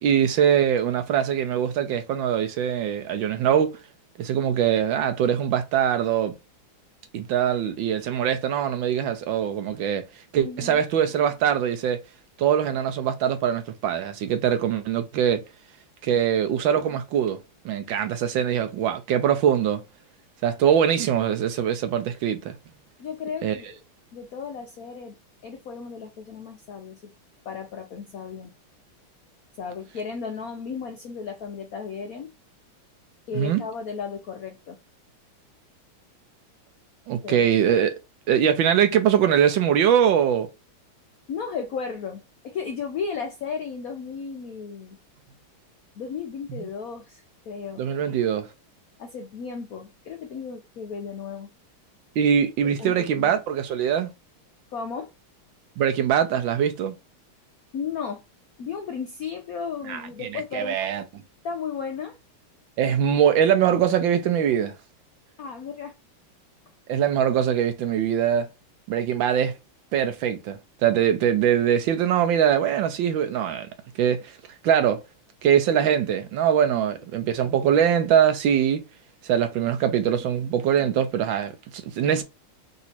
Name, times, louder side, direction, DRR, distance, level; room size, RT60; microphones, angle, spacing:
voice 1, 0.0-3.7 4.2-6.3 7.1-10.0 10.3-12.0 12.4-15.4 16.0-17.4 17.6-19.8 20.4-22.6 23.4-23.6 33.3-33.6 37.1-38.0 38.3-40.5 47.8-48.5 52.2-54.1 55.8-56.9 59.9-60.0 60.5-61.0 62.8-64.7 66.9-68.5 68.9-69.5 69.9-73.7 74.0-74.3 74.6-75.0 75.4-78.8 79.2-82.2, right 9 dB, 75° right, 1.2 m, -22 dB
voice 2, 10.4-10.8 16.1-16.2 23.0-23.8 24.1-25.2 25.4-27.1 27.4-28.5 29.6-32.3 33.3-34.8 37.2-37.5 41.3-45.0 45.9-47.8 49.0-51.5 52.8-53.3 54.7-55.1 57.7-58.2 58.6-60.8 61.4-62.2 65.4-65.9 76.7-76.9 80.8-80.9, left 6 dB, 80° left, 0.7 m, -34 dB
4.0 x 2.7 x 4.2 m
omnidirectional pair, 2.4 m